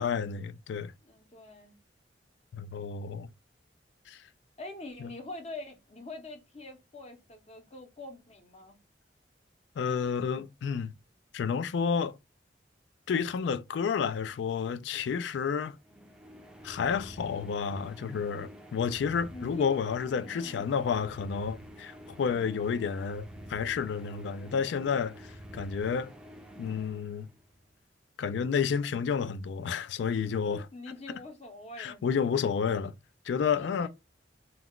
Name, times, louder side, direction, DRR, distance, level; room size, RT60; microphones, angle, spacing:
voice 1, 0.0-0.9 2.5-3.3 4.1-4.3 5.0-5.1 9.8-10.9 11.3-12.2 13.1-15.8 16.6-26.1 26.6-27.3 28.2-30.6 31.8-32.9 33.2-33.9, left 6 dB, 75° left, 0.3 m, -30 dB
voice 2, 1.0-1.8 4.6-8.8 19.3-19.8 20.1-20.9 30.5-32.0 33.6-33.9, left 2 dB, 35° left, 0.7 m, -44 dB
sound 1, 15.8-27.7, equal, 5° right, 0.4 m, -48 dB
2.3 x 2.3 x 3.5 m
head